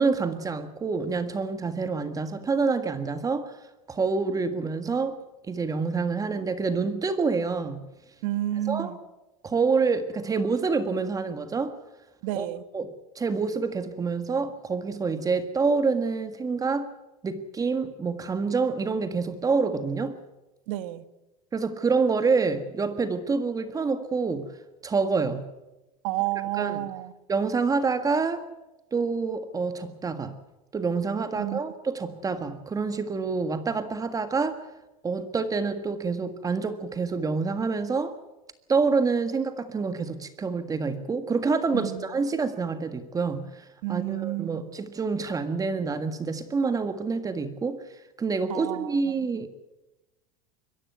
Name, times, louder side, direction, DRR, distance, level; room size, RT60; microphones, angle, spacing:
voice 1, 0.0-3.6 3.9-5.2 5.5-7.8 8.7-9.0 9.4-11.7 12.3-12.5 12.7-16.9 17.2-20.2 21.5-24.5 24.8-25.4 26.5-26.9 27.3-28.5 28.9-30.4 30.7-34.6 35.0-38.2 38.7-47.8 48.2-49.5, right 4 dB, 20° right, 10 dB, 1.6 m, -27 dB
voice 2, 8.2-9.0 12.2-12.6 20.7-21.0 26.0-27.1 31.4-31.6 41.7-42.0 43.8-44.6 48.5-48.9, right 15 dB, 65° right, 13 dB, 1.5 m, -30 dB
22.5 x 15.0 x 9.4 m, 1.0 s
supercardioid pair, 115°, 18 cm